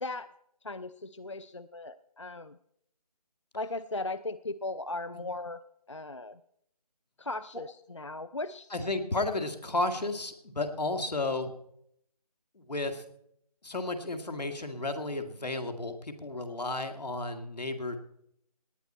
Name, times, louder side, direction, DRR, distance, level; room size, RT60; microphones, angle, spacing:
voice 1, 0.6-2.6 3.5-5.6 5.9-6.4 7.2-8.7, left 2 dB, 45° left, 15 dB, 0.4 m, -37 dB
voice 2, 8.7-11.5 12.6-13.1 13.6-18.0, left 2 dB, 80° left, 6 dB, 2.1 m, -33 dB
18.0 x 9.9 x 4.3 m, 0.73 s
figure-of-eight pair, 180°, 21 cm